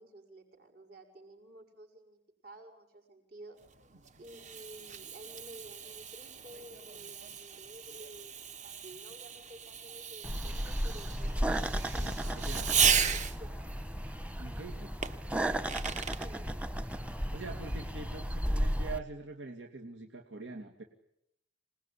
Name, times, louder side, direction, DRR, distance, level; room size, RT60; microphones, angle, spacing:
voice 1, 0.0-3.6 4.2-12.8 13.1-13.7 16.2-16.6, right 1 dB, 55° right, 5 dB, 6.7 m, -52 dB
Fireworks, 3.7-13.6 15.0-16.3, right 7 dB, 40° right, 1.3 m, -35 dB
sound 1, 10.2-19.0, equal, 5° right, 1.2 m, -34 dB
voice 2, 11.7-12.7 14.4-14.9 17.3-20.8, right 3 dB, 85° right, 3 dB, 2.5 m, -44 dB
27.0 x 20.0 x 10.0 m, 0.78 s
head